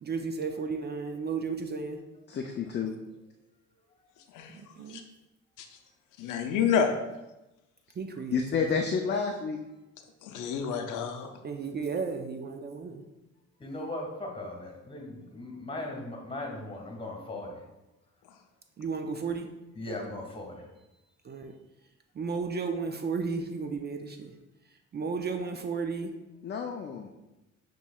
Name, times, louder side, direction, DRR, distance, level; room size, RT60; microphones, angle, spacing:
voice 1, 0.0-2.0 4.5-5.0 8.0-8.4 11.4-13.0 18.8-19.5 21.2-21.5 22.2-24.3 24.9-26.1, right 5 dB, 35° right, 5 dB, 0.4 m, -33 dB
voice 2, 2.3-2.9 8.3-9.6 26.4-27.1, left 5 dB, 35° left, 3 dB, 0.4 m, -30 dB
voice 3, 6.2-7.0 10.2-11.3, left 7 dB, 90° left, 5 dB, 0.6 m, -28 dB
voice 4, 13.6-17.5 19.7-20.6, left 2 dB, 20° left, 0 dB, 1.5 m, -38 dB
7.1 x 3.0 x 2.3 m, 0.98 s
cardioid pair, 90°, 30 cm